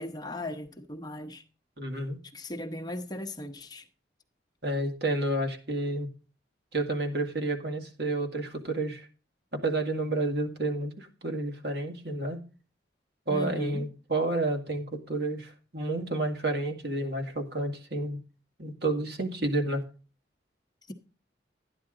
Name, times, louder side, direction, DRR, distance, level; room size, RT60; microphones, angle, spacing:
voice 1, 0.0-1.4 2.3-3.9 13.3-13.9 20.9-21.0, left 1 dB, 20° left, 1.0 m, -37 dB
voice 2, 1.8-2.2 4.6-6.1 6.7-9.1 9.5-12.4 13.3-18.2 18.6-19.8, right 2 dB, 60° right, 2.1 m, -30 dB
13.0 x 9.9 x 3.9 m
head